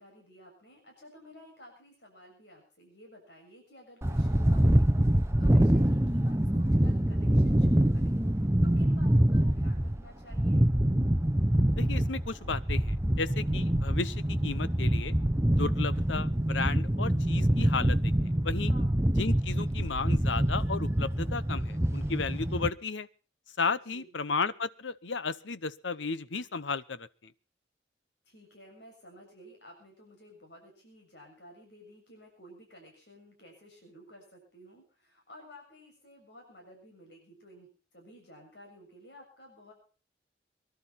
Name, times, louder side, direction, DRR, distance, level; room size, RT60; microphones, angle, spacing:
voice 1, 0.0-10.7 18.7-19.1 23.9-24.1 28.2-37.7 37.9-39.7, equal, 65° left, 1 dB, 7.0 m, -53 dB
sound 1, 4.0-22.7, right 1 dB, 15° right, 0.8 m, -25 dB
voice 2, 11.8-15.1 15.6-18.7 19.2-23.1 23.6-27.3, left 4 dB, 80° left, 16 dB, 0.9 m, -34 dB
23.5 x 12.0 x 4.2 m, 0.38 s
head